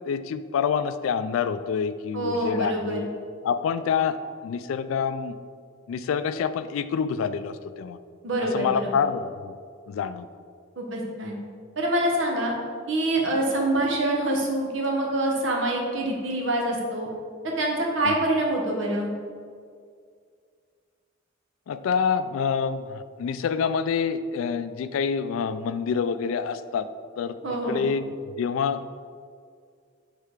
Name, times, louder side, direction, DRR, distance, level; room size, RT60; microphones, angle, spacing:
voice 1, 0.1-3.1 3.4-4.2 4.4-5.3 5.9-8.0 8.5-9.6 9.9-10.3 18.0-18.1 21.7-26.9 27.2-27.3 27.7-28.9, left 6 dB, 80° left, 13 dB, 0.3 m, -27 dB
voice 2, 2.1-3.0 8.2-8.9 10.8-11.4 11.8-12.5 12.9-17.1 17.6-19.1 27.4-27.8, right 1 dB, 65° right, -1 dB, 1.1 m, -25 dB
6.6 x 3.3 x 4.7 m, 2.1 s
head